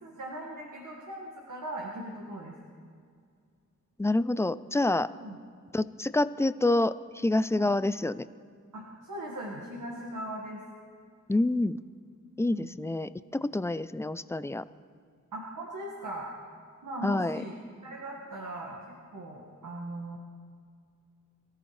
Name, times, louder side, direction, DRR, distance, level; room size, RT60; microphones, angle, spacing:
voice 1, 0.0-2.5 5.2-5.4 7.5-7.7 8.7-10.6 12.5-12.7 15.3-16.3 16.8-17.5 17.8-20.2, right 1 dB, 90° right, -2 dB, 1.8 m, -39 dB
voice 2, 4.0-5.1 5.7-8.3 11.3-11.8 12.4-14.6 17.0-17.4, left 2 dB, 10° left, 15 dB, 0.3 m, -27 dB
23.0 x 14.0 x 3.2 m, 2.2 s
wide cardioid pair, 85°, 31 cm